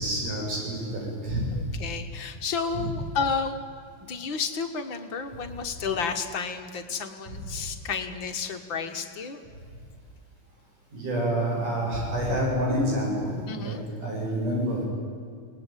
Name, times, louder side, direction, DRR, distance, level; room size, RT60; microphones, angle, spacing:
voice 1, 0.0-1.7 2.7-2.8 10.9-14.9, equal, 90° right, -3 dB, 9.5 m, -28 dB
voice 2, 1.5-3.6 4.1-9.4 13.5-13.8, left 5 dB, 45° left, 6 dB, 1.8 m, -31 dB
28.5 x 19.0 x 9.3 m, 2.2 s
omnidirectional pair, 3.5 m